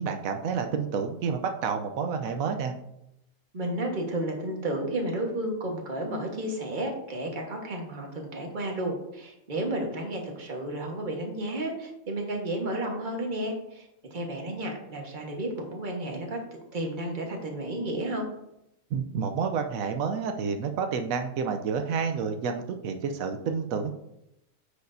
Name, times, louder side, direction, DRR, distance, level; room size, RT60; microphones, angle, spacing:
voice 1, 0.0-2.7 18.9-23.9, right 6 dB, 85° right, 6 dB, 1.1 m, -29 dB
voice 2, 3.5-16.4 16.7-18.3, right 1 dB, 35° right, 1 dB, 1.5 m, -32 dB
9.5 x 6.7 x 2.7 m, 0.83 s
omnidirectional pair, 1.4 m